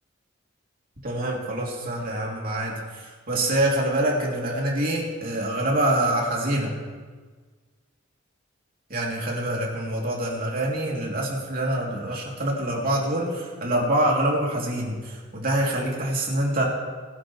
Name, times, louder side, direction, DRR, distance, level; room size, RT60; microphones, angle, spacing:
voice 1, 1.0-6.7 8.9-16.6, right 1 dB, 45° right, -2 dB, 2.9 m, -25 dB
21.0 x 11.5 x 3.2 m, 1.5 s
head